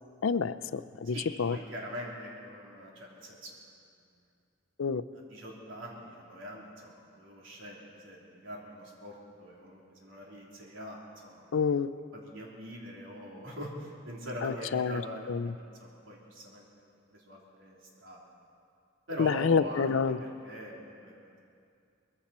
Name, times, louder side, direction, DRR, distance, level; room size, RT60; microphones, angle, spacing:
voice 1, 0.2-1.6 4.8-5.0 11.5-11.9 14.4-15.0 15.3-15.5 19.2-20.2, left 5 dB, 85° left, 14 dB, 0.5 m, -28 dB
voice 2, 1.1-3.5 5.3-11.6 12.1-16.6 17.1-18.2 19.1-21.4, equal, 75° right, -3 dB, 3.3 m, -43 dB
21.0 x 15.0 x 4.3 m, 2.4 s
head